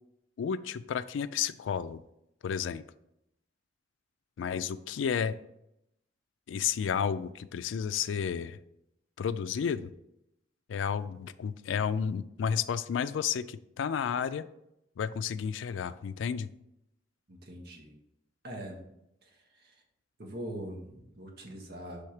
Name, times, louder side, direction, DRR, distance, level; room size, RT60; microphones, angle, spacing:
voice 1, 0.4-2.0 2.4-2.8 4.4-5.4 6.5-8.6 9.2-9.9 10.7-14.5 15.0-16.5, left 7 dB, 85° left, 14 dB, 0.3 m, -32 dB
voice 2, 17.3-17.9 18.4-18.8 19.2-19.8 20.2-22.0, right 1 dB, 60° right, 1 dB, 1.3 m, -42 dB
5.7 x 3.5 x 4.8 m, 0.83 s
head